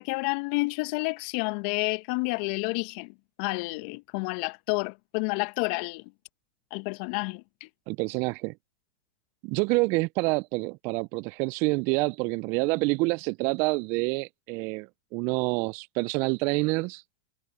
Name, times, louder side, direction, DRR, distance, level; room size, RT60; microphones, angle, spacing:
voice 1, 0.0-6.1 6.7-7.7, left 29 dB, 50° left, 1.6 m, -30 dB
voice 2, 7.9-8.5 9.4-17.0, right 27 dB, 45° right, 0.7 m, -27 dB
hypercardioid pair, 100°, 6 cm